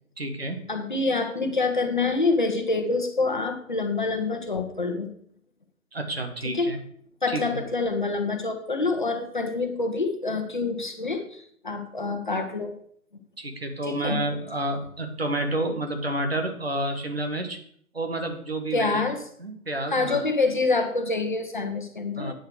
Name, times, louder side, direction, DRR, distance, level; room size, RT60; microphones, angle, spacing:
voice 1, 0.2-0.6 5.9-6.8 7.3-7.6 13.4-17.6 17.9-19.0 19.4-20.2 22.1-22.3, right 1 dB, 40° right, 6 dB, 1.6 m, -29 dB
voice 2, 0.7-5.1 6.5-6.7 7.2-12.7 13.9-14.2 18.7-19.2 19.9-22.3, left 3 dB, 35° left, 4 dB, 1.4 m, -26 dB
9.0 x 6.6 x 6.3 m, 0.62 s
figure-of-eight pair, 170°, 44 cm